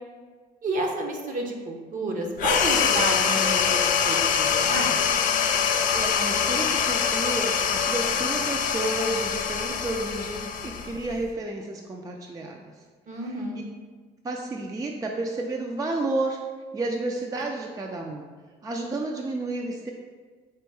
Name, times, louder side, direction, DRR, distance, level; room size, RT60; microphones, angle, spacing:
voice 1, 0.6-5.0 13.1-13.6, right 2 dB, 50° right, 2 dB, 0.8 m, -30 dB
sound 1, 2.4-11.3, left 7 dB, 50° left, 0.4 m, -24 dB
voice 2, 5.9-12.7 13.1-13.4 14.2-16.4 16.7-18.3 18.6-19.9, right 2 dB, 20° right, 1 dB, 0.4 m, -31 dB
4.4 x 2.6 x 4.6 m, 1.5 s
cardioid pair, 110°, 17 cm